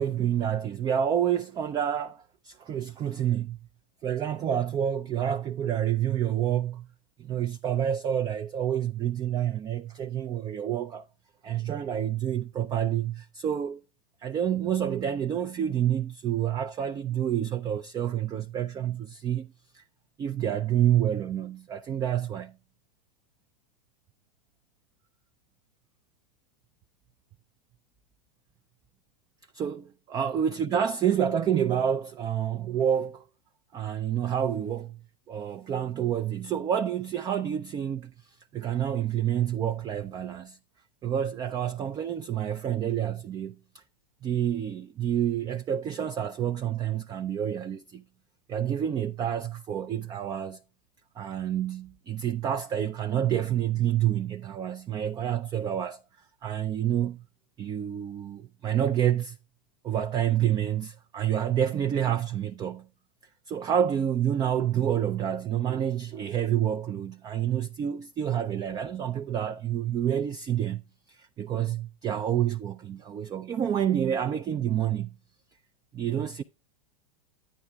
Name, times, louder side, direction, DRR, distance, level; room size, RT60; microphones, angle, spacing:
voice 1, 0.0-3.6 4.0-6.9 7.2-11.1 11.4-13.8 14.2-19.8 20.2-22.5 29.5-33.3 33.7-35.0 35.3-40.6 41.0-43.8 44.2-48.0 48.5-50.6 51.2-56.0 56.4-57.2 57.6-59.4 59.8-62.9 63.5-70.8 71.1-75.1 75.9-76.4, right 10 dB, 20° right, 0.4 m, -28 dB
11.0 x 9.0 x 2.3 m
hypercardioid pair, 115°, 20 cm